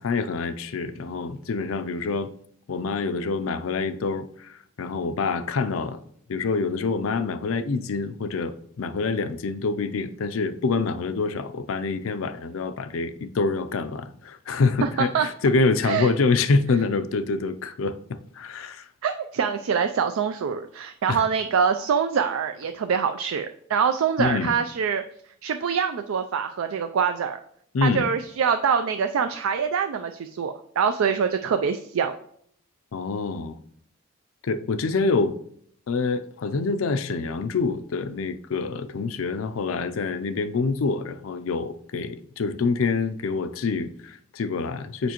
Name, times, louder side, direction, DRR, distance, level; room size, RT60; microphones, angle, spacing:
voice 1, 0.0-2.3 2.7-6.0 6.3-18.9 21.1-21.2 24.2-24.5 27.7-28.1 32.9-33.6 34.4-35.3 35.9-45.1, left 4 dB, 75° left, 0.5 m, -26 dB
voice 2, 14.8-15.3 15.8-16.1 19.0-25.0 25.4-27.4 27.8-32.2, right 6 dB, 85° right, 0.4 m, -24 dB
6.9 x 5.0 x 2.9 m
head